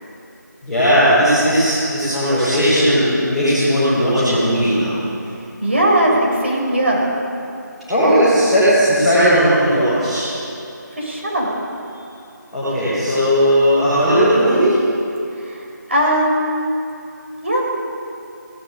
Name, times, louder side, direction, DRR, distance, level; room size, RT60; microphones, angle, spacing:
voice 1, 0.6-4.9 7.9-10.3 12.5-14.7, equal, ahead, -19 dB, 4.6 m, -16 dB
voice 2, 5.6-7.1 10.9-11.5 15.3-16.7 17.4-17.8, right 1 dB, 40° right, -3 dB, 7.0 m, -19 dB
18.5 x 16.5 x 8.6 m, 2.7 s
figure-of-eight pair, 175°, 10 cm